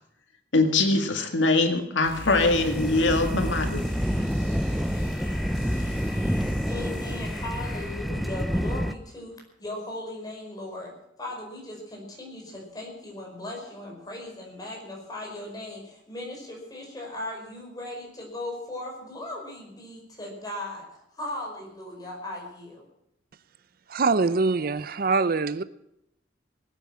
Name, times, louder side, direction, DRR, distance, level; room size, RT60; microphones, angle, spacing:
voice 1, 0.5-3.8, left 3 dB, 90° left, 5 dB, 2.0 m, -22 dB
sound 1, 2.0-8.2, equal, 70° left, 7.3 m, -40 dB
sound 2, 2.4-8.9, equal, ahead, 0.6 m, -28 dB
voice 2, 6.7-10.9 11.2-22.9, left 1 dB, 20° left, 0 dB, 5.2 m, -38 dB
voice 3, 23.9-25.6, right 4 dB, 50° right, 15 dB, 0.6 m, -23 dB
20.0 x 9.0 x 7.4 m, 0.80 s
head